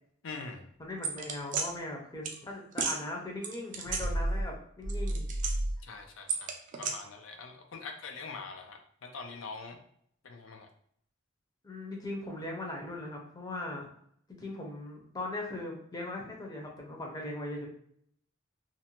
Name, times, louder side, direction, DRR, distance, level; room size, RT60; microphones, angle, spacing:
voice 1, 0.2-0.7 5.8-9.8 10.2-10.7, left 4 dB, 90° left, 4 dB, 0.5 m, -44 dB
voice 2, 0.8-5.3 11.6-13.9 14.4-17.7, left 1 dB, 20° left, -1 dB, 0.5 m, -39 dB
sound 1, 1.0-1.7 2.2-2.4 2.7-3.0 3.4-4.5 4.8-5.8 6.3-6.9, right 3 dB, 40° right, 0.4 m, -31 dB
2.5 x 2.1 x 2.9 m, 0.66 s
head